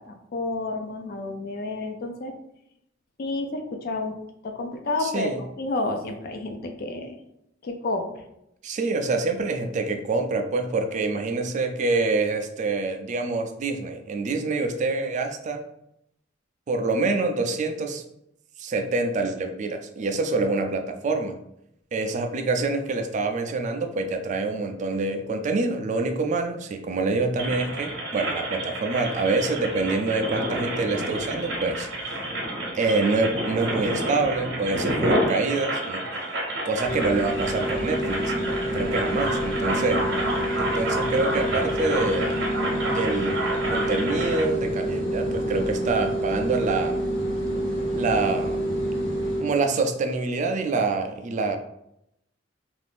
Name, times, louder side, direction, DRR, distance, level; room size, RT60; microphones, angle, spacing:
voice 1, 0.0-2.3 3.2-4.2 4.4-7.2 7.6-8.2, left 2 dB, 55° left, 5 dB, 0.4 m, -30 dB
voice 2, 5.0-5.4 8.6-15.6 16.7-18.0 18.6-21.3 21.9-32.2 32.7-36.0 36.7-40.0 40.6-42.4 42.8-43.5 43.7-47.0 48.0-48.6 49.4-51.6, right 3 dB, 40° right, 6 dB, 0.3 m, -26 dB
sound 1, 27.4-44.4, right 1 dB, 65° right, 0.8 m, -29 dB
sound 2, 36.8-49.5, equal, 80° left, 1.0 m, -28 dB
2.5 x 2.4 x 3.3 m, 0.80 s
head